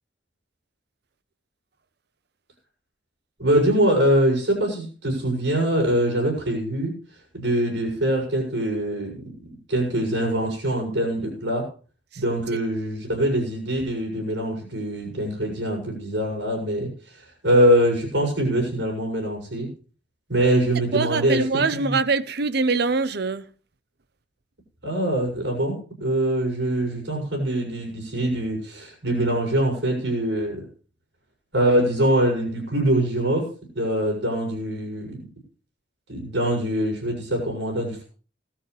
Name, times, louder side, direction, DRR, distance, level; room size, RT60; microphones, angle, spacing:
voice 1, 3.4-7.0 7.3-11.7 12.2-19.7 20.3-22.0 24.8-30.7 31.5-35.3 36.1-38.1, right 1 dB, 80° right, 7.0 m, -23 dB
voice 2, 20.9-23.4, right 4 dB, 60° right, 0.8 m, -23 dB
18.5 x 13.0 x 3.3 m
head